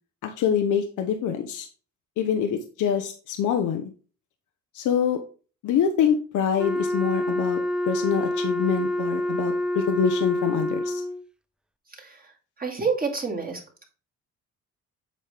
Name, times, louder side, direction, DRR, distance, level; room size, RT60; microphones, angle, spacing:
voice 1, 0.2-1.7 2.2-3.9 4.7-5.2 5.6-7.6 7.8-11.0, left 7 dB, 75° left, 6 dB, 0.9 m, -25 dB
Wind instrument woodwind instrument, 6.6-11.2, left 1 dB, 5° right, 0.4 m, -27 dB
voice 2, 11.9-12.3 12.6-13.8, right 5 dB, 30° right, 0 dB, 2.3 m, -29 dB
7.6 x 5.3 x 3.4 m, 0.37 s
cardioid pair, 90°, 30 cm